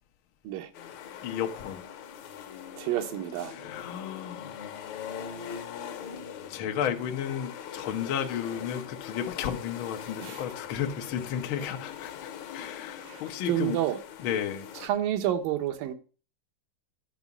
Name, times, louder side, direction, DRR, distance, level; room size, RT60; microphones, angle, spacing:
sound 1, 0.7-14.9, left 8 dB, 65° left, 2.1 m, -42 dB
voice 1, 1.2-1.8 3.5-4.6 6.5-13.8 14.2-14.7, left 9 dB, 85° left, 1.1 m, -33 dB
voice 2, 2.8-3.5 10.2-10.4 13.1-14.0 14.7-15.9, right 12 dB, 85° right, 2.8 m, -29 dB
11.5 x 5.9 x 5.3 m
omnidirectional pair, 3.9 m